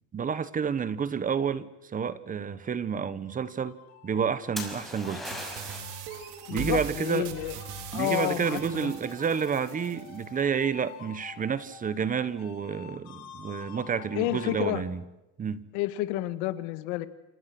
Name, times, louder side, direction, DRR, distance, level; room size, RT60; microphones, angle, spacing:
voice 1, 0.1-3.8 4.0-5.2 6.5-7.3 7.9-15.0 15.4-15.7, right 7 dB, 25° right, 1.2 m, -30 dB
sound 1, 3.2-14.8, left 9 dB, 55° left, 5.9 m, -49 dB
sound 2, 4.6-6.0 9.7-10.1, left 1 dB, ahead, 6.3 m, -38 dB
sound 3, 5.2-10.3, right 10 dB, 70° right, 3.6 m, -40 dB
voice 2, 6.5-7.5 7.9-8.9 14.2-14.8 15.7-17.1, left 15 dB, 85° left, 1.8 m, -30 dB
29.5 x 27.0 x 6.2 m
cardioid pair, 135°, 31 cm